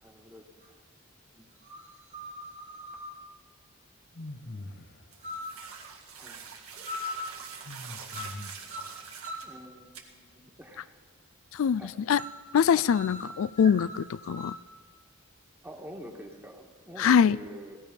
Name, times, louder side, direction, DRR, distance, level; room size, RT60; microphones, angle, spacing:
voice 1, 0.0-0.4 1.3-1.5 6.2-6.6 9.4-11.0 11.8-11.9 12.7-12.8 15.6-17.8, equal, 10° right, 2 dB, 1.5 m, -46 dB
sound 1, 0.6-0.7 1.6-3.2 5.2-5.7 6.9-7.4 8.1-8.4 8.7-9.6 12.2-12.5 12.9-14.7, left 1 dB, 35° right, 1.5 m, -40 dB
sound 2, 4.2-5.1 7.6-8.8, left 2 dB, 50° left, 1.0 m, -42 dB
sound 3, 5.1-9.5 9.9-10.0, right 6 dB, 85° right, 1.8 m, -45 dB
voice 2, 12.5-14.6 17.0-17.4, left 7 dB, 65° left, 20 dB, 0.3 m, -23 dB
18.0 x 13.5 x 5.2 m, 1.5 s
head